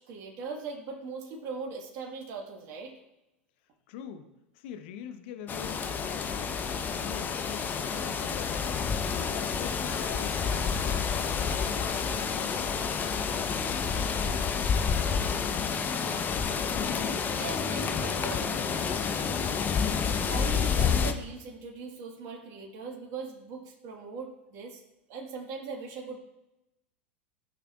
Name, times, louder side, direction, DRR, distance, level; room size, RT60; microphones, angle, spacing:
voice 1, 0.0-2.9 17.4-18.4 20.3-24.8 25.1-26.2, right 4 dB, 45° right, 0 dB, 1.5 m, -40 dB
voice 2, 3.9-6.6 6.9-8.8 9.3-12.9, left 9 dB, 60° left, 8 dB, 0.7 m, -44 dB
sound 1, 5.5-21.1, left 6 dB, 30° left, 0.7 m, -29 dB
14.0 x 5.7 x 2.4 m, 0.93 s
hypercardioid pair, 90°, 7 cm